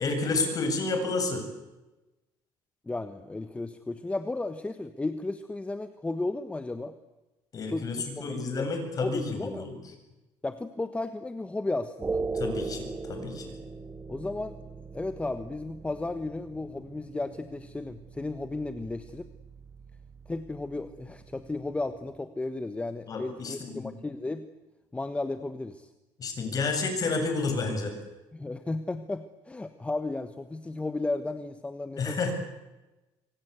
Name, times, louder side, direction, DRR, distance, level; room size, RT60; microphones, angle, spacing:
voice 1, 0.0-1.4 7.5-9.8 12.3-13.5 23.1-23.9 26.2-28.0 32.0-32.3, left 3 dB, 35° left, 5 dB, 7.6 m, -30 dB
voice 2, 2.8-7.0 7.7-8.7 9.0-9.7 10.4-12.2 14.1-14.5 14.9-19.3 20.3-24.5 24.9-25.9 28.3-32.3, left 2 dB, 10° left, 10 dB, 1.3 m, -34 dB
sound 1, 12.0-22.2, right 4 dB, 20° right, 2.5 m, -40 dB
25.5 x 25.0 x 8.3 m, 1.1 s
cardioid pair, 130°, 10 cm